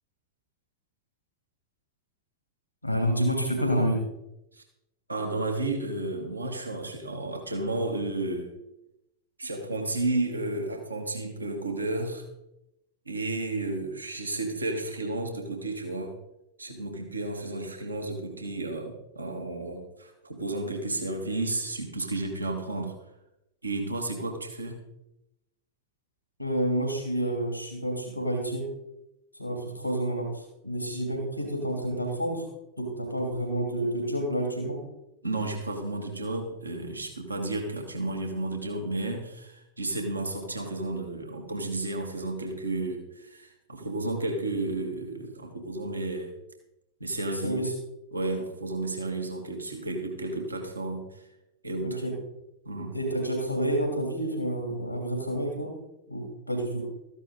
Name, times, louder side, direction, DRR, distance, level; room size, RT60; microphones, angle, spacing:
voice 1, 2.8-4.0 26.4-28.7 29.3-32.5 32.8-34.8 47.3-47.7 51.8-52.2 52.9-55.8 56.1-56.9, right 1 dB, 90° left, 1 dB, 2.9 m, -29 dB
voice 2, 5.1-8.5 9.4-12.2 13.1-16.1 16.6-23.0 23.6-24.8 35.2-46.3 47.0-47.6 48.1-51.3 51.6-52.0 52.7-53.0, right 2 dB, 80° right, 2 dB, 2.1 m, -32 dB
14.5 x 10.5 x 3.8 m, 0.88 s
figure-of-eight pair, 90°, 0 cm